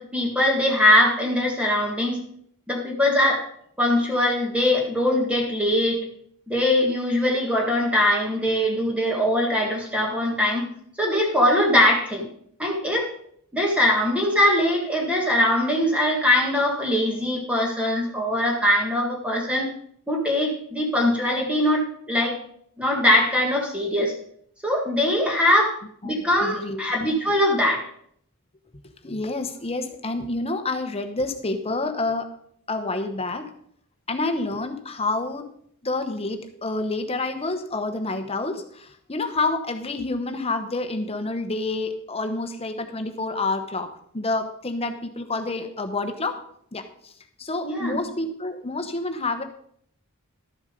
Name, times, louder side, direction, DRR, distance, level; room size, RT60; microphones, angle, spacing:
voice 1, 0.0-2.2 2.7-3.4 3.8-6.0 6.5-10.7 11.0-12.3 12.6-13.1 13.5-19.7 20.1-22.4 22.8-24.1 24.6-25.7 26.0-27.9 47.6-48.0, left 1 dB, 5° right, 0 dB, 1.7 m, -21 dB
voice 2, 26.0-26.8 29.0-32.3 32.7-33.5 34.1-35.5 35.8-46.4 46.7-47.1 47.4-49.4, left 2 dB, 25° left, 7 dB, 1.1 m, -28 dB
12.5 x 7.2 x 5.2 m, 0.66 s
head